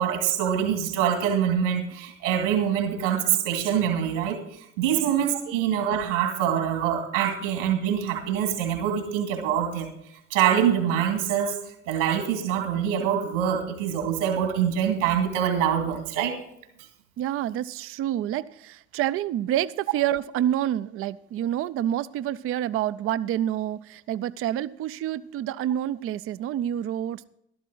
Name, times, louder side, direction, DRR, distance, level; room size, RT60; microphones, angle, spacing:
voice 1, 0.0-9.9 10.3-11.6 11.9-16.4, right 9 dB, 70° right, 5 dB, 2.5 m, -25 dB
voice 2, 17.2-27.2, right 11 dB, 35° right, 16 dB, 0.5 m, -28 dB
12.5 x 12.5 x 3.9 m, 0.76 s
hypercardioid pair, 65°, 37 cm